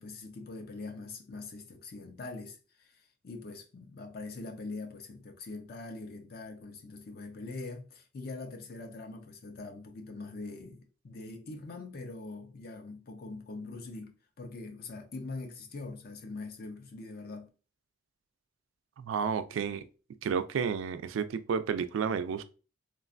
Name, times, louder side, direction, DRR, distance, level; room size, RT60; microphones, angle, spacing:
voice 1, 0.0-17.5, left 3 dB, 50° left, 0.5 m, -43 dB
voice 2, 19.0-19.8 20.2-22.4, right 6 dB, 85° right, 0.3 m, -31 dB
3.1 x 2.4 x 2.5 m
head